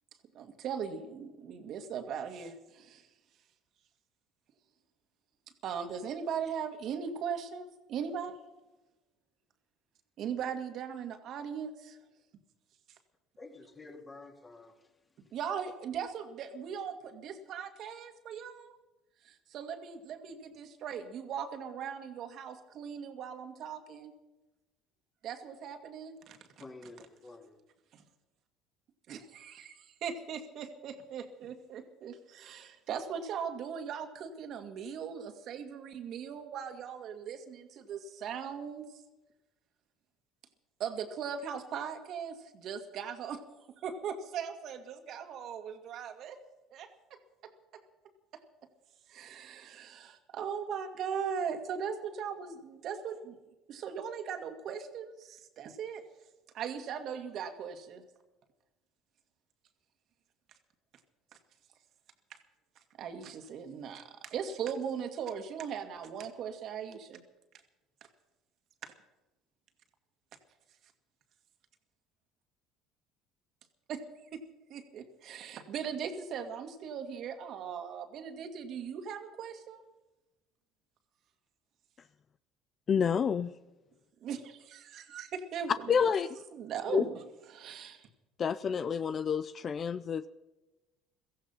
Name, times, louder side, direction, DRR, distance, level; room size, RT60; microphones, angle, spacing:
voice 1, 0.3-3.1 5.6-8.3 10.2-12.0 15.3-18.8 19.2-24.1 25.2-26.6 27.9-28.0 29.1-38.9 40.8-43.4 43.8-46.4 46.7-47.8 48.3-48.4 49.1-53.4 53.7-56.0 56.5-58.0 62.3-62.4 63.0-67.2 68.8-68.9 73.9-74.0 74.3-74.4 74.7-79.8 84.2-85.9 86.5-87.2 87.5-88.1, right 7 dB, 60° right, 2.0 m, -39 dB
voice 2, 13.4-14.7 26.6-27.6, left 3 dB, 25° left, 3.0 m, -49 dB
voice 3, 82.9-83.5 85.9-86.3 86.9-87.0 88.4-90.3, left 7 dB, 45° left, 0.5 m, -29 dB
16.5 x 14.5 x 5.7 m
hypercardioid pair, 70°, 0 cm